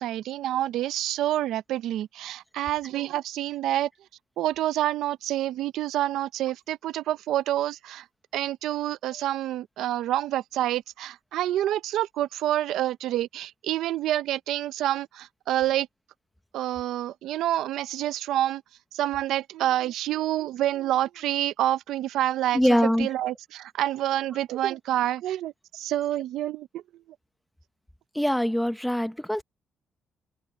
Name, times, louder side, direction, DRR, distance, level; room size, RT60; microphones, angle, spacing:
voice 1, 0.0-3.9 4.4-8.0 8.3-15.9 16.5-18.6 18.9-22.6 23.0-26.8, right 13 dB, 85° right, 0.6 m, -27 dB
voice 2, 22.5-23.1 28.1-29.4, equal, ahead, 0.9 m, -23 dB
cardioid pair, 175°, 0 cm